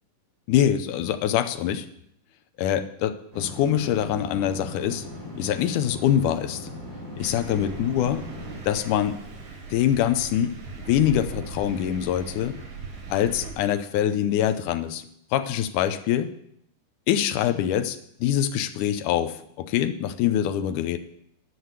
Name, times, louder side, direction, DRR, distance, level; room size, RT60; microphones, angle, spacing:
voice 1, 0.5-1.9 2.6-5.1 5.4-6.6 7.2-8.3 8.6-9.2 9.7-12.6 13.1-15.0 15.3-16.3 17.1-21.0, left 10 dB, 80° left, 9 dB, 2.1 m, -24 dB
sound 1, 3.3-8.6, left 1 dB, 15° right, 4.3 m, -38 dB
Thunder, 7.2-13.5, right 4 dB, 80° right, 3.8 m, -39 dB
11.0 x 6.2 x 8.1 m, 0.73 s
omnidirectional pair, 4.0 m